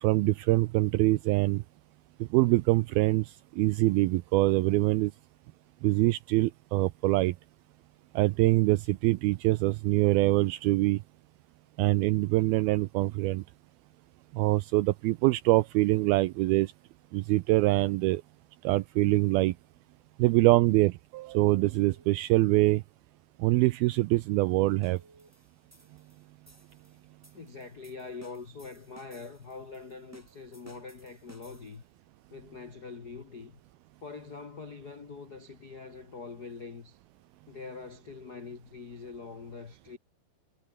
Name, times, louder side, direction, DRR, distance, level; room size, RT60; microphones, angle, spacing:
voice 1, 0.0-1.6 2.3-3.3 3.6-5.1 5.8-7.3 8.2-11.0 11.8-13.4 14.3-16.7 17.1-18.2 18.6-19.5 20.2-22.8 23.4-25.0, right 19 dB, 85° right, 2.2 m, -24 dB
Telephone, 20.9-21.1 21.5-22.5 23.1-23.2 23.6-23.7 24.2-25.3 26.5-27.1, right 3 dB, 35° right, 8.9 m, -60 dB
sound 1, 24.8-31.9, equal, 5° right, 5.0 m, -58 dB
voice 2, 27.3-31.8 32.3-33.6 34.0-37.0 37.5-40.0, left 4 dB, 85° left, 0.8 m, -44 dB
omnidirectional pair, 5.0 m